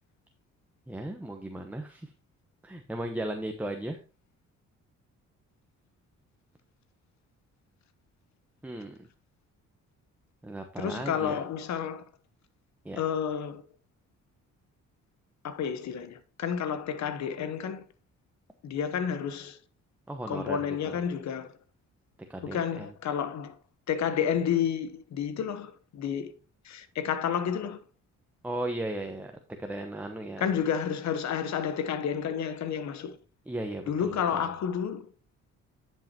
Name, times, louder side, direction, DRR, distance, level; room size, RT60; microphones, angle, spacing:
voice 1, 0.9-2.1 2.6-4.0 8.6-9.1 10.4-11.4 12.8-13.0 20.1-20.6 20.8-21.0 22.3-22.9 28.4-29.3 29.6-30.5 33.5-34.5, right 1 dB, 5° right, 0.9 m, -36 dB
voice 2, 10.8-12.0 13.0-13.6 15.4-17.8 18.6-19.6 20.3-21.5 22.4-23.5 23.9-26.3 26.6-27.8 30.4-33.2 33.9-35.1, left 8 dB, 65° left, 1.0 m, -30 dB
10.5 x 5.6 x 2.9 m
cardioid pair, 90°, 30 cm